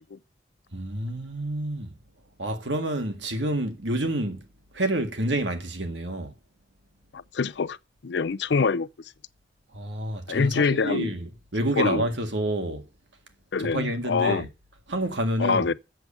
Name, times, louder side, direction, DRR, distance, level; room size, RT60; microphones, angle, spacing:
voice 1, 0.7-1.9 2.4-4.5 4.7-6.3 9.7-12.9 13.6-14.5 14.9-15.7, right 1 dB, 85° right, 1.8 m, -28 dB
voice 2, 7.1-7.8 8.0-8.9 10.3-11.1 11.8-12.0 13.5-14.5 15.4-15.7, left 5 dB, 70° left, 0.5 m, -25 dB
7.7 x 7.1 x 6.6 m
head